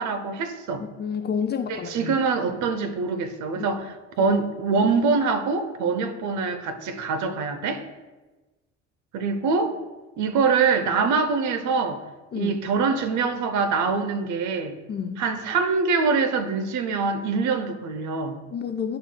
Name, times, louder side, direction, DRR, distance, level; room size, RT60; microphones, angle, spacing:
voice 1, 0.0-0.8 1.7-7.8 9.1-9.8 10.2-12.0 12.3-14.8 15.2-18.4, right 4 dB, 50° right, 0.8 m, -24 dB
voice 2, 0.8-2.1 3.6-3.8 12.3-12.6 14.9-15.2 18.5-19.0, left 7 dB, 25° left, 0.6 m, -29 dB
11.0 x 4.2 x 2.3 m
figure-of-eight pair, 55°, 37 cm